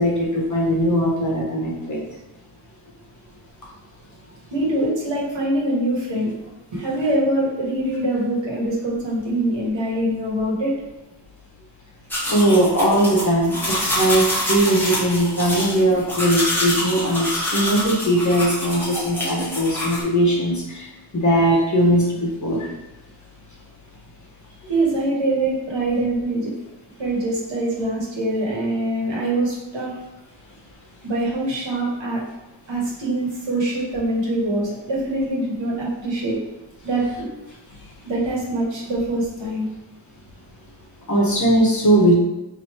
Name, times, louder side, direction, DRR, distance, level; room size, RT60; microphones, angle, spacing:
voice 1, 0.0-2.0 12.3-20.9 21.1-22.7 41.1-42.2, right 1 dB, 40° left, -3 dB, 0.9 m, -19 dB
voice 2, 4.5-6.3 6.7-10.7 24.7-26.5 27.0-29.9 31.0-32.2 32.7-36.4 36.8-37.3 38.0-39.7, right 1 dB, 70° right, -4 dB, 1.3 m, -24 dB
sound 1, 12.1-20.0, left 1 dB, 5° left, 0.9 m, -26 dB
3.0 x 2.7 x 4.3 m, 1.0 s
wide cardioid pair, 155°, 46 cm